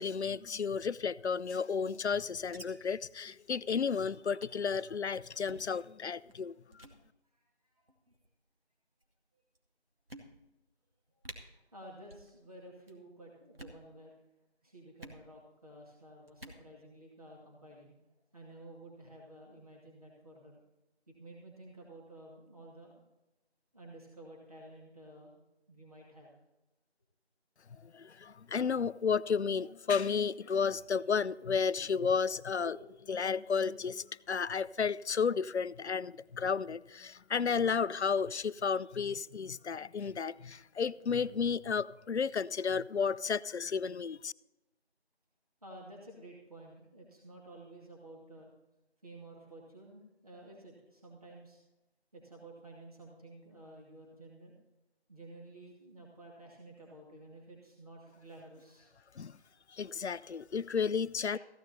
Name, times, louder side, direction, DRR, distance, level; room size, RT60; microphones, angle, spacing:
voice 1, 0.0-6.8 27.8-32.7 33.1-44.3 59.2-59.4 59.7-61.4, left 6 dB, 85° left, 0.5 m, -32 dB
sound 1, 1.2-2.7 2.9-3.0 3.3-3.5 3.8-4.0 4.4-4.7 5.3-5.7 6.3-6.4 6.7-7.0 7.9-8.3 9.0-9.1 9.5-9.6 10.1-10.6 10.9-11.0 11.2-11.4 12.0-12.3 12.6-13.0 13.4-13.8 15.0-15.2 16.3-16.6, right 1 dB, 60° right, 2.1 m, -51 dB
voice 2, 11.7-14.1 14.6-17.9 18.3-20.5 21.1-22.9 23.7-25.3 25.7-26.4 31.6-31.7 32.6-32.9 33.2-33.3 45.6-48.5 49.0-51.6 52.1-54.5 55.1-58.9 59.2-59.5 61.3-61.4, right 1 dB, 35° right, 2.2 m, -52 dB
15.0 x 10.0 x 4.2 m
figure-of-eight pair, 180°, 33 cm